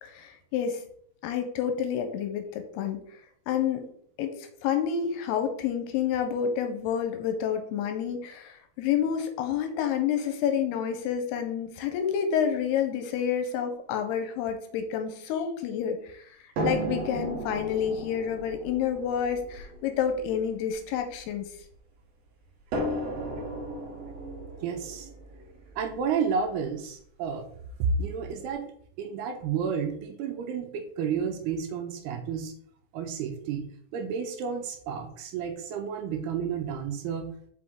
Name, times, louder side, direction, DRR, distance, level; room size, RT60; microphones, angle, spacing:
voice 1, 0.0-0.8 1.2-3.2 3.5-3.8 4.2-21.5, left 8 dB, 85° left, 6 dB, 2.6 m, -29 dB
sound 1, 16.6-21.8 22.7-26.7 27.6-27.7 28.2-28.3, right 1 dB, 60° right, 1.7 m, -35 dB
voice 2, 24.6-25.1 25.8-27.5 27.8-28.7 29.0-32.5 32.9-33.7 33.9-37.3, right 6 dB, 80° right, 5 dB, 2.6 m, -31 dB
6.2 x 5.3 x 3.6 m, 0.63 s
omnidirectional pair, 4.9 m